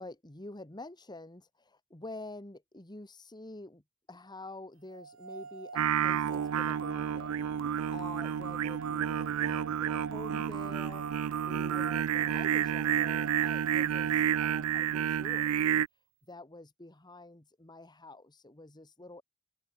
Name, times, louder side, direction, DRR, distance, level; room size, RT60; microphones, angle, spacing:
voice 1, 0.0-3.8 4.1-11.1 11.5-15.8 16.3-19.2, left 2 dB, 20° left, 1.9 m, -48 dB
sound 1, 4.9-15.0, right 4 dB, 70° right, 1.7 m, -47 dB
Singing, 5.8-15.9, right 9 dB, 90° right, 0.4 m, -30 dB
open air
head